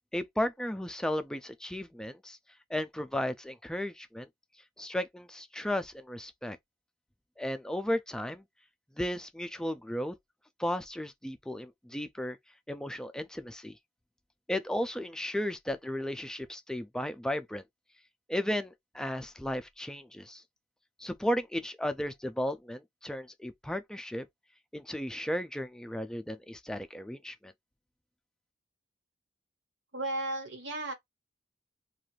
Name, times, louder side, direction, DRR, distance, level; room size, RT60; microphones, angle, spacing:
voice 1, 0.1-2.4 2.7-4.3 4.8-6.6 7.4-8.4 9.0-10.1 10.6-12.4 12.7-13.8 14.5-17.6 18.3-20.4 21.0-24.3 24.7-27.5, left 1 dB, 5° left, 0.3 m, -34 dB
voice 2, 29.9-30.9, right 2 dB, 80° right, 1.2 m, -34 dB
2.5 x 2.4 x 3.1 m
head